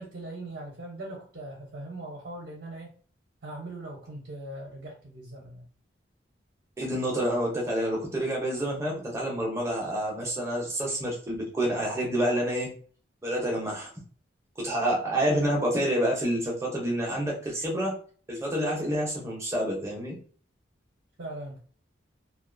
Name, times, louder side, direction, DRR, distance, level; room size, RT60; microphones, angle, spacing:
voice 1, 0.0-2.9 3.4-5.6 21.2-21.6, right 1 dB, 55° right, -4 dB, 0.7 m, -40 dB
voice 2, 6.8-12.7 13.2-13.9 14.6-17.9 18.3-20.2, right 1 dB, 15° right, -3 dB, 0.7 m, -28 dB
2.5 x 2.3 x 2.5 m, 0.43 s
head